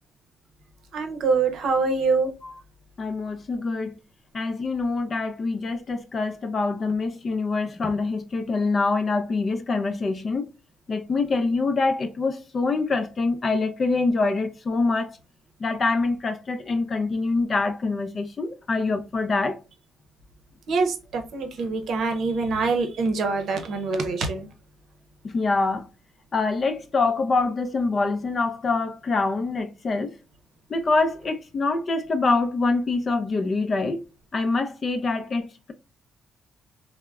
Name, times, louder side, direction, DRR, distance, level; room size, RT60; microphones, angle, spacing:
voice 1, 0.9-2.3 20.7-24.5, right 4 dB, 70° right, 0.7 m, -24 dB
voice 2, 3.0-3.9 4.3-10.4 10.9-15.2 15.6-19.6 25.2-25.9 26.3-30.1 30.7-34.0 34.3-35.7, left 3 dB, 40° left, 0.5 m, -25 dB
3.3 x 2.1 x 2.3 m
cardioid pair, 90°, 0 cm